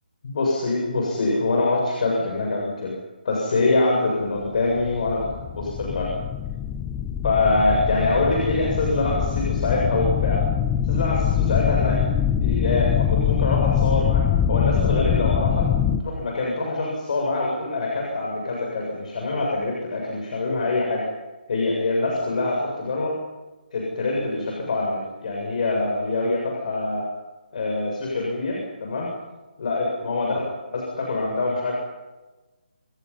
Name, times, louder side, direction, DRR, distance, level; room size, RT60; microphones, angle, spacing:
voice 1, 0.2-2.9 3.2-5.3 5.6-6.1 7.2-10.4 10.8-12.0 12.4-14.2 14.5-21.0 21.5-23.1 23.7-27.0 27.5-29.1 29.6-30.4 30.7-31.7, left 2 dB, 50° left, -1 dB, 7.5 m, -24 dB
sound 1, 4.6-16.0, left 9 dB, 15° left, 1.3 m, -23 dB
28.0 x 26.0 x 5.7 m, 1.2 s
figure-of-eight pair, 145°, 5 cm